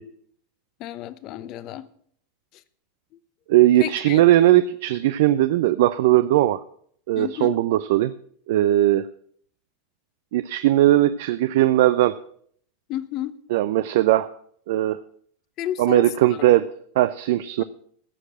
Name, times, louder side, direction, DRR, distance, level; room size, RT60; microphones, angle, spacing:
voice 1, 0.8-1.9 3.8-4.2 7.1-7.6 12.9-13.4 15.6-16.5, left 12 dB, 45° left, 15 dB, 0.9 m, -31 dB
voice 2, 3.5-6.6 7.1-8.1 8.5-9.1 10.3-12.2 13.5-14.3 14.7-15.0 15.8-16.7 17.0-17.6, right 14 dB, 65° right, 13 dB, 0.5 m, -19 dB
14.5 x 6.6 x 7.6 m, 0.63 s
hypercardioid pair, 90°, 0 cm